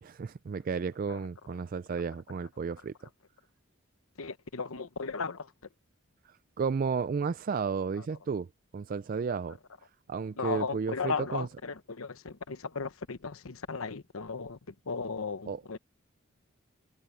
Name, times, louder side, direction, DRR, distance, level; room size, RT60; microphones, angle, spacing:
voice 1, 0.0-2.9 6.2-8.5 8.7-9.6 10.1-11.5 15.5-15.6, right 5 dB, 40° right, 0.3 m, -33 dB
voice 2, 4.2-5.5 8.0-8.1 10.4-14.6 14.9-15.8, left 4 dB, 80° left, 1.0 m, -36 dB
head